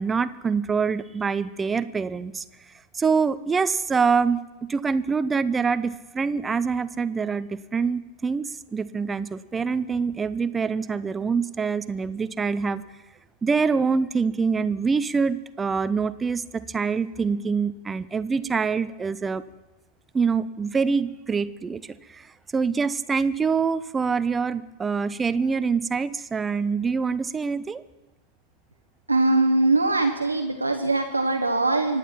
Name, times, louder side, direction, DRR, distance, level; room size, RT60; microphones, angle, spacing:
voice 1, 0.0-2.4 2.9-12.8 13.4-19.4 20.1-27.8, right 5 dB, 15° right, 14 dB, 0.5 m, -25 dB
voice 2, 29.1-32.0, right 2 dB, 80° right, 5 dB, 1.0 m, -22 dB
24.5 x 9.2 x 5.8 m, 1.1 s
figure-of-eight pair, 90°, 0 cm